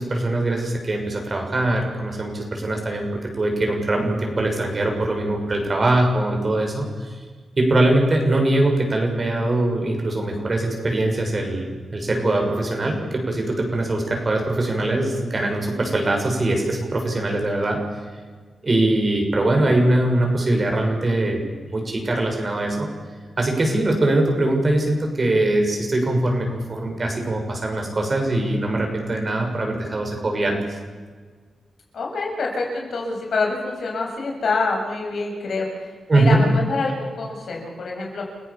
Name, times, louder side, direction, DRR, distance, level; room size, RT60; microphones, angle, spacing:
voice 1, 0.0-3.1 3.4-7.1 7.6-11.7 11.9-17.8 18.6-21.4 21.7-22.9 23.4-30.6 36.1-36.4, right 1 dB, 40° right, 2 dB, 6.8 m, -22 dB
voice 2, 31.9-38.2, left 3 dB, 70° left, 0 dB, 7.4 m, -26 dB
30.0 x 17.5 x 7.2 m, 1.5 s
cardioid pair, 85°, 0 cm